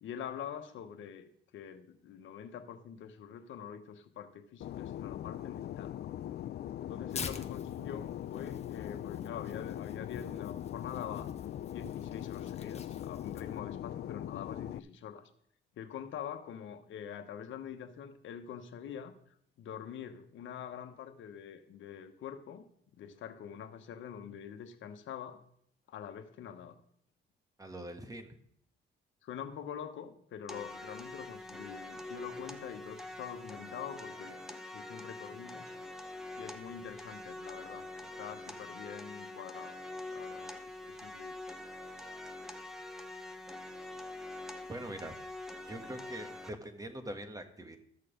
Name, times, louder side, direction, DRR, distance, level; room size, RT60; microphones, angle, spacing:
voice 1, 0.0-6.1 6.9-11.3 11.7-15.3 15.8-19.1 19.6-22.6 23.0-25.4 25.9-26.8 29.2-35.7 36.3-39.8 40.1-41.4, left 8 dB, 75° left, 7 dB, 1.2 m, -45 dB
Fixed-wing aircraft airplane, 4.6-14.8, left 11 dB, 55° left, 0.4 m, -41 dB
Tearing, 7.1-13.6, left 5 dB, 35° left, 1.1 m, -47 dB
voice 2, 27.6-28.4 44.7-45.2 45.6-47.8, right 1 dB, 15° right, 8 dB, 1.4 m, -43 dB
sound 1, 30.5-46.5, left 2 dB, ahead, 0.9 m, -45 dB
13.0 x 6.7 x 5.1 m, 0.67 s
cardioid pair, 90°, 20 cm